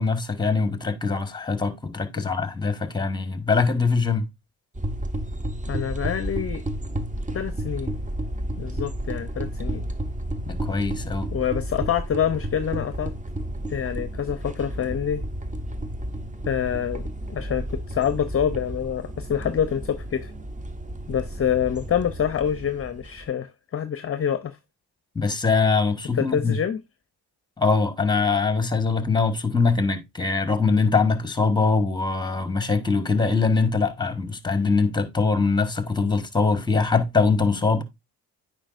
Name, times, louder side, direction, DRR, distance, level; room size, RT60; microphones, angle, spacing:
voice 1, 0.0-4.3 10.5-11.3 25.1-26.6 27.6-37.8, left 4 dB, 10° left, 1.2 m, -22 dB
sound 1, 4.7-23.3, right 1 dB, 20° right, 0.8 m, -32 dB
voice 2, 5.7-6.6 7.3-8.0 8.6-9.9 11.3-13.1 13.7-15.2 16.5-17.0 17.3-20.3 21.1-24.6 26.1-26.8, left 8 dB, 35° left, 0.6 m, -26 dB
8.8 x 5.0 x 2.5 m
supercardioid pair, 60°, 41 cm